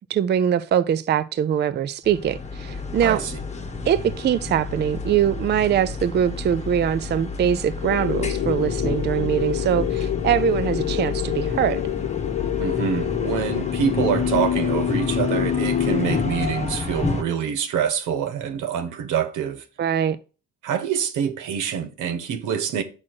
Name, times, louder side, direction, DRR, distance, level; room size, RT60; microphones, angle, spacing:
voice 1, 0.1-3.2 3.9-11.8 19.8-20.2, right 9 dB, 35° right, 0.4 m, -22 dB
sound 1, 2.0-17.2, left 3 dB, 20° left, 1.0 m, -30 dB
sound 2, 7.8-16.3, left 13 dB, 60° left, 0.4 m, -27 dB
voice 2, 12.6-19.6 20.6-22.8, right 8 dB, 85° right, 0.9 m, -26 dB
6.1 x 4.3 x 4.6 m
cardioid pair, 90°, 30 cm